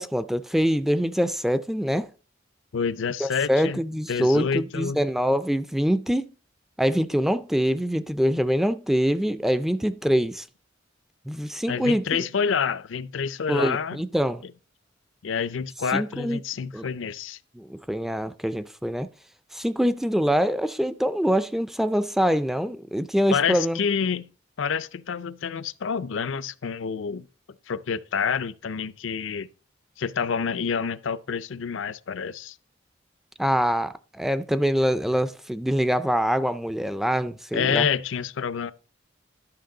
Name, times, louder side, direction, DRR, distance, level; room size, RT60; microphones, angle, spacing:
voice 1, 0.0-2.1 3.2-6.3 6.8-10.5 11.3-12.2 13.5-14.4 15.9-16.4 16.7-16.9 17.6-19.1 19.5-23.8 33.4-37.9, equal, ahead, 0.3 m, -24 dB
voice 2, 2.7-3.8 4.1-5.0 11.7-14.0 15.2-17.4 23.3-24.3 24.6-27.3 27.7-29.5 30.0-32.6 37.5-38.7, left 6 dB, 70° left, 0.5 m, -28 dB
11.5 x 5.8 x 3.8 m
head